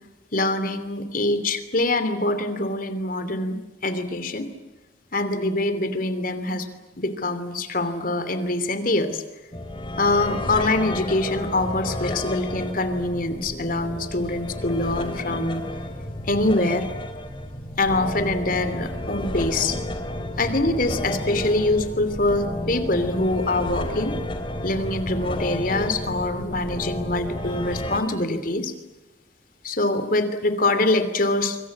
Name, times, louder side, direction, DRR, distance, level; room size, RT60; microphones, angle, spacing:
voice 1, 0.3-4.5 5.1-6.7 7.0-9.2 10.0-15.6 16.3-16.9 17.8-19.8 20.4-24.2 24.6-28.7 29.6-31.6, left 2 dB, 50° left, 10 dB, 2.9 m, -24 dB
sound 1, 9.5-28.0, left 1 dB, 30° left, 3.0 m, -31 dB
25.0 x 24.5 x 8.7 m, 1.1 s
head